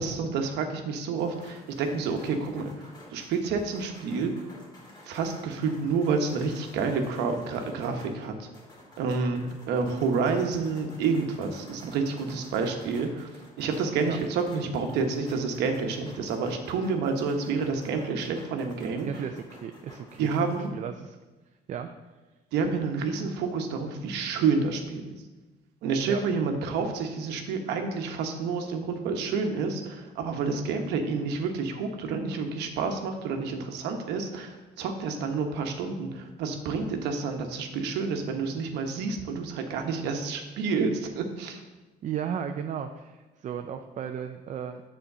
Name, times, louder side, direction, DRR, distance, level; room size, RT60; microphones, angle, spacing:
voice 1, 0.0-2.7 3.1-4.3 5.0-8.5 9.0-9.4 9.7-13.3 13.6-19.1 20.2-20.7 22.5-25.1 25.8-41.6, right 4 dB, 85° right, 5 dB, 1.0 m, -29 dB
sound 1, 1.2-20.7, left 1 dB, 25° left, 2.5 m, -51 dB
voice 2, 19.0-20.5 20.7-21.2 21.7-21.9 26.0-26.2 42.0-44.8, right 8 dB, 45° right, 6 dB, 0.5 m, -35 dB
7.2 x 4.4 x 6.6 m, 1.2 s
cardioid pair, 110°, 17 cm